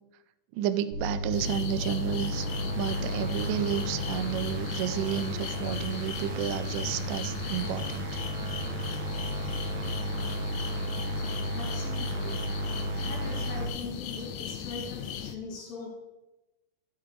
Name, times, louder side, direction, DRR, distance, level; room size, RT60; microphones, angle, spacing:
voice 1, 0.6-2.5 2.7-8.6, right 10 dB, 80° right, 10 dB, 2.2 m, -32 dB
sound 1, 0.9-13.7, right 1 dB, 55° right, 1.7 m, -34 dB
sound 2, 1.3-15.4, left 9 dB, 80° left, 1.6 m, -37 dB
voice 2, 11.5-12.4 13.0-15.9, left 3 dB, 55° left, -2 dB, 3.5 m, -41 dB
13.5 x 9.3 x 3.3 m, 1.0 s
omnidirectional pair, 3.9 m